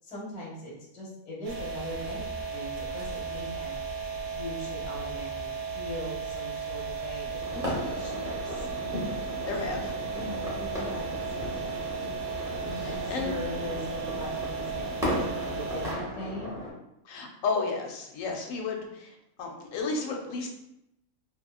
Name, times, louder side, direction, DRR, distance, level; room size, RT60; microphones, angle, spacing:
voice 1, 0.0-3.7 4.3-8.7 9.4-11.7 12.6-16.5, left 1 dB, 30° left, -4 dB, 0.8 m, -40 dB
sound 1, 1.4-15.9, right 5 dB, 65° right, 0.8 m, -35 dB
sound 2, 7.4-16.7, left 1 dB, 5° right, 0.5 m, -35 dB
voice 2, 9.5-9.9 12.8-13.3 17.0-19.1 19.4-20.5, left 4 dB, 70° left, 2 dB, 0.9 m, -32 dB
2.9 x 2.4 x 2.3 m, 0.82 s
omnidirectional pair, 1.5 m